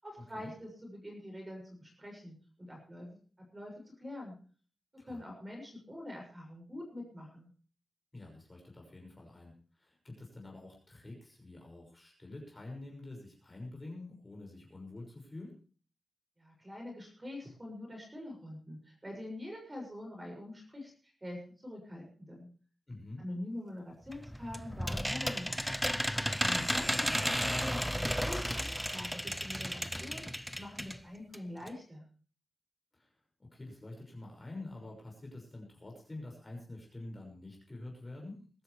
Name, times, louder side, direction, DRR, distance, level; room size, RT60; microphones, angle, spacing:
voice 1, 0.0-3.2 3.5-4.3 5.0-7.5 16.4-22.5 23.2-25.6 26.4-32.0, left 1 dB, 20° right, 0 dB, 6.7 m, -45 dB
voice 2, 8.1-15.5 22.9-23.2 26.3-26.7 32.9-33.1 33.4-38.4, left 2 dB, 20° left, 0 dB, 6.1 m, -47 dB
sound 1, 24.1-31.0 31.3-31.4 31.7-31.8, equal, ahead, 0.6 m, -33 dB
21.5 x 12.5 x 3.4 m, 0.40 s
wide cardioid pair, 165°, 0 cm